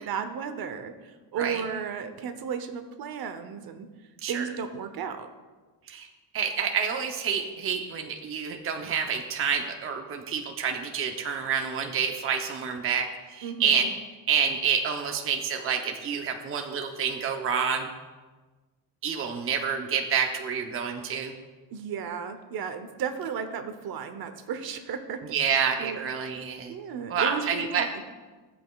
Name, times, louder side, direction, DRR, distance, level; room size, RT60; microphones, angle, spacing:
voice 1, 0.0-3.9 4.3-5.3 13.4-13.9 21.7-25.2 25.8-26.0 26.7-28.0, right 7 dB, 55° right, 9 dB, 0.9 m, -34 dB
voice 2, 5.9-13.9 14.3-17.9 19.0-21.3 25.3-26.7 27.1-27.9, right 6 dB, 30° right, 4 dB, 0.7 m, -28 dB
16.5 x 8.0 x 2.3 m, 1.3 s
cardioid pair, 150°, 43 cm